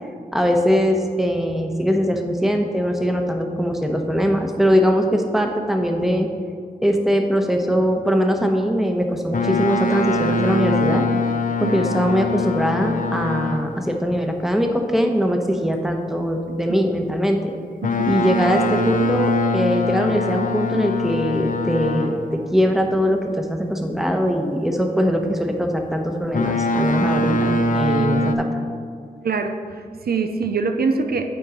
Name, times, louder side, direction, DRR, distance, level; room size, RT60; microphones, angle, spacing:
voice 1, 0.3-6.3 6.8-11.0 11.6-17.5 18.1-28.6, equal, ahead, 3 dB, 0.9 m, -21 dB
Boat Water vehicle, 9.3-13.9 17.8-22.4 26.3-28.3, left 2 dB, 60° left, 0.5 m, -23 dB
voice 2, 17.8-18.2 28.0-28.1 29.2-31.3, right 4 dB, 85° right, 6 dB, 0.5 m, -24 dB
8.5 x 4.6 x 5.2 m, 2.1 s
wide cardioid pair, 50°, 15 cm